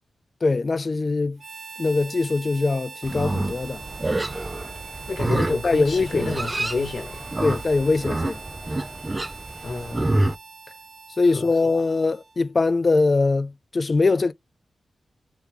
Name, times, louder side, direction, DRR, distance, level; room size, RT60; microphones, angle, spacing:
voice 1, 0.4-1.4 1.8-3.8 5.6-6.3 7.4-8.4 11.2-14.3, left 3 dB, 45° left, 0.3 m, -22 dB
Harmonica, 1.4-12.5, right 4 dB, 65° right, 1.0 m, -42 dB
Livestock farm animals working animals, 3.0-10.3, right 2 dB, 25° right, 0.4 m, -28 dB
voice 2, 5.1-7.3 9.6-10.1 11.2-11.5, left 3 dB, 65° left, 0.9 m, -30 dB
3.4 x 3.4 x 3.3 m
cardioid pair, 65°, 0 cm